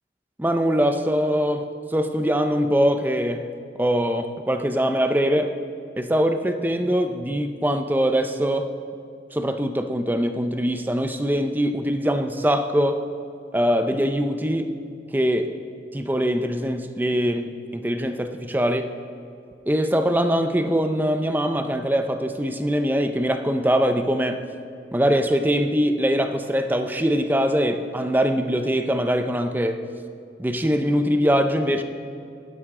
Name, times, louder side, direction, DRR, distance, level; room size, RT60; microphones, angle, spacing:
voice 1, 0.4-3.5 3.8-5.5 6.0-8.7 9.3-13.1 13.5-14.8 15.1-15.6 15.9-18.9 19.7-24.4 24.9-29.8 30.4-31.8, equal, 10° right, 8 dB, 0.5 m, -22 dB
18.5 x 10.5 x 3.7 m, 2.4 s
head